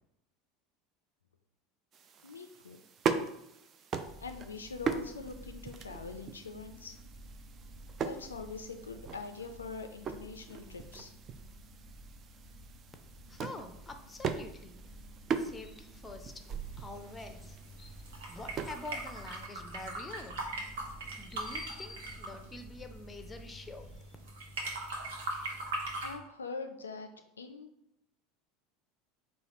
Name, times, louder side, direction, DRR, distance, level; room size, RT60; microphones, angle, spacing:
sound 1, 1.9-19.5, right 6 dB, 35° right, 0.3 m, -40 dB
voice 1, 2.2-2.8 4.2-7.0 8.0-11.1 26.0-27.1 27.4-27.7, left 4 dB, 80° left, 6 dB, 0.3 m, -43 dB
sound 2, 4.1-24.0, right 1 dB, 5° right, 1.0 m, -52 dB
voice 2, 13.3-15.0 15.3-16.3 16.8-24.2, left 2 dB, 15° left, 6 dB, 0.5 m, -47 dB
sound 3, 16.5-26.1, right 2 dB, 65° right, 0.8 m, -41 dB
4.1 x 2.2 x 4.0 m, 0.81 s
figure-of-eight pair, 75°, 0 cm